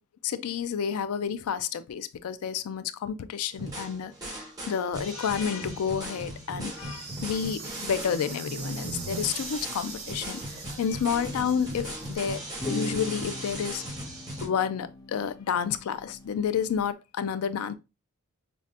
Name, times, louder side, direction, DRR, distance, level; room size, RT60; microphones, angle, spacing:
voice 1, 0.2-10.4 10.8-12.4 12.7-13.8 14.4-17.7, left 7 dB, 85° left, 0.4 m, -30 dB
sound 1, 3.5-14.5, right 1 dB, 15° right, 1.2 m, -38 dB
Insect, 6.6-12.2, right 5 dB, 45° right, 0.7 m, -42 dB
sound 2, 9.9-10.1 10.9-11.3 12.6-16.9, left 2 dB, 20° left, 0.5 m, -39 dB
5.6 x 2.1 x 2.5 m
head